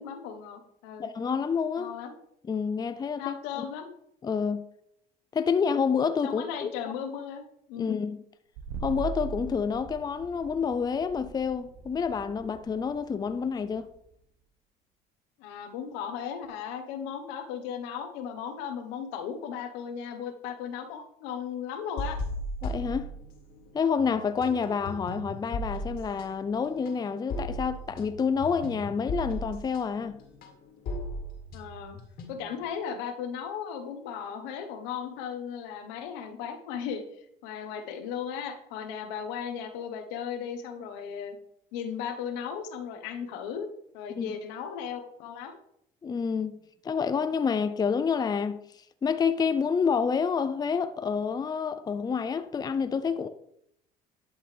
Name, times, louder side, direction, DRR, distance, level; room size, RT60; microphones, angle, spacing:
voice 1, 0.0-1.1 1.8-2.2 3.2-3.9 6.2-7.4 7.7-8.0 15.4-22.2 31.5-32.0 32.3-41.4 41.7-43.7 43.9-45.6, left 7 dB, 85° left, 1.2 m, -36 dB
voice 2, 1.0-1.9 2.5-3.6 4.2-4.6 5.3-6.7 7.8-8.2 8.8-13.9 22.6-23.1 23.7-30.2 44.2-44.3 46.0-46.6 46.8-53.3, left 6 dB, 20° left, 0.5 m, -28 dB
sound 1, 8.6-14.1, right 5 dB, 80° right, 1.1 m, -41 dB
sound 2, 22.0-23.7 24.0-32.6, left 1 dB, 60° left, 2.1 m, -37 dB
11.5 x 5.4 x 3.4 m
supercardioid pair, 95°, 18 cm